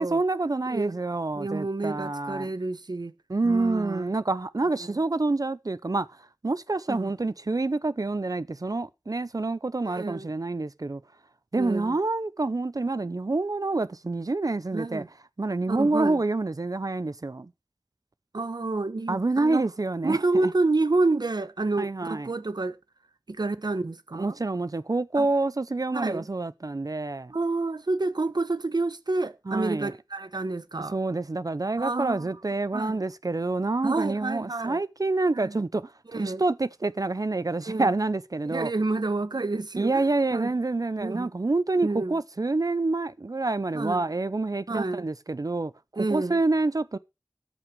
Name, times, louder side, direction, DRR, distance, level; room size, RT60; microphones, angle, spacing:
voice 1, 0.0-2.5 3.3-11.0 11.5-15.0 15.4-17.5 19.1-20.5 21.8-22.3 24.1-27.3 29.5-29.9 30.9-38.7 39.8-47.0, right 3 dB, 55° right, 0.6 m, -27 dB
voice 2, 1.3-3.1 3.4-4.1 6.9-7.1 9.8-10.3 11.6-12.0 14.7-15.1 15.7-16.2 18.3-19.6 20.0-22.8 23.3-24.4 25.2-25.3 25.9-26.3 27.3-31.0 31.8-32.3 32.7-33.0 33.8-34.8 35.3-35.6 36.1-36.4 37.7-37.9 38.5-40.5 41.0-41.3 41.8-42.1 43.7-44.0 44.7-45.1 46.0-46.4, right 3 dB, 80° right, 1.0 m, -29 dB
13.0 x 6.0 x 6.1 m
wide cardioid pair, 40°, 7 cm